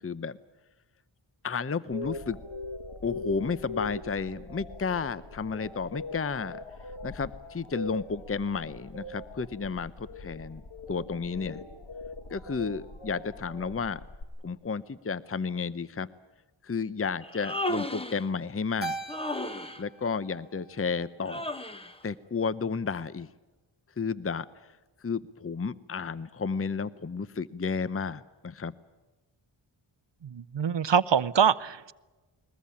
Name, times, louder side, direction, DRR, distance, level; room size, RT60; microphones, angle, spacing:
voice 1, 0.0-0.4 1.4-2.4 3.0-6.6 7.0-10.6 10.9-11.6 12.3-14.0 14.4-16.1 16.6-18.9 19.8-21.5 22.0-23.3 24.0-24.5 25.0-28.7, left 5 dB, 30° left, 16 dB, 0.7 m, -32 dB
sound 1, 1.9-14.2, left 2 dB, 70° left, 2.2 m, -41 dB
Human voice, 17.2-18.3 19.1-19.8 21.3-22.0, left 1 dB, 10° left, 1.3 m, -34 dB
Keyboard (musical), 18.8-21.3, right 3 dB, 20° right, 2.2 m, -41 dB
voice 2, 30.2-31.9, right 7 dB, 60° right, 17 dB, 0.7 m, -24 dB
21.5 x 20.0 x 8.5 m, 1.2 s
wide cardioid pair, 50°, 49 cm